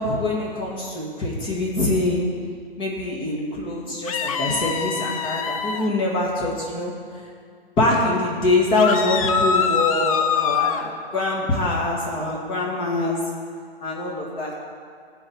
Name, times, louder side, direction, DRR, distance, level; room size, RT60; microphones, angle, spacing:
voice 1, 0.0-2.2 2.8-6.9 7.8-13.2 13.8-14.5, left 2 dB, 15° left, -3 dB, 2.1 m, -24 dB
sound 1, 4.1-5.9 8.7-10.8, left 6 dB, 35° left, 0.6 m, -24 dB
13.5 x 4.8 x 8.8 m, 2.2 s
hypercardioid pair, 145°, 31 cm